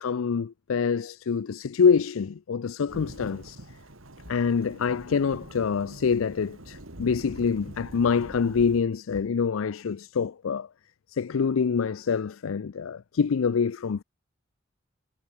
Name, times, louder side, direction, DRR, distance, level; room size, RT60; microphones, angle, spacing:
voice 1, 0.0-3.6 4.3-10.7 11.1-14.0, left 6 dB, 90° left, 0.5 m, -26 dB
Thunderstorm / Rain, 2.9-8.8, right 1 dB, 85° right, 3.4 m, -44 dB
head